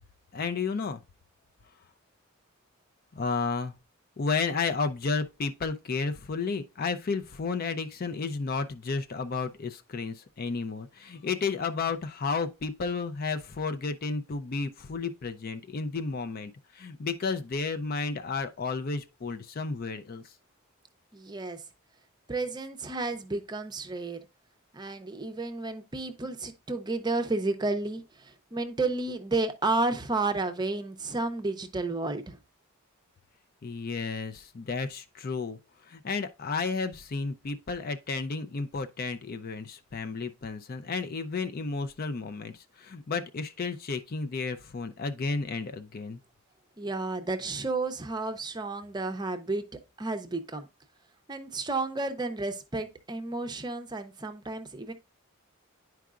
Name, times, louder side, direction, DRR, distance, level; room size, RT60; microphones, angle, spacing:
voice 1, 0.3-1.0 3.1-3.7 4.2-20.2 33.6-46.2, left 4 dB, 45° left, 0.5 m, -32 dB
voice 2, 21.1-21.6 22.3-24.2 24.7-32.4 46.8-50.7 51.3-54.9, right 3 dB, 20° right, 0.6 m, -32 dB
10.5 x 4.6 x 2.4 m
head